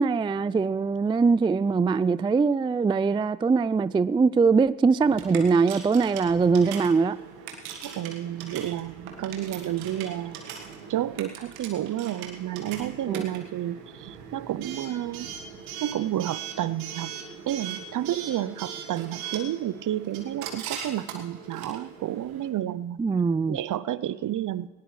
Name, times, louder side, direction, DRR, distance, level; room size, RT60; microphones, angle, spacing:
voice 1, 0.0-7.2 13.1-13.2 23.0-23.6, right 4 dB, 15° right, 17 dB, 0.3 m, -22 dB
Coin (dropping) / Alarm, 5.0-22.5, right 7 dB, 90° right, 1.7 m, -40 dB
voice 2, 7.8-10.4 10.9-15.3 15.8-17.1 17.5-23.0 23.5-24.7, right 12 dB, 50° right, 17 dB, 0.6 m, -30 dB
19.0 x 18.0 x 3.2 m, 1.5 s
hypercardioid pair, 50°, 41 cm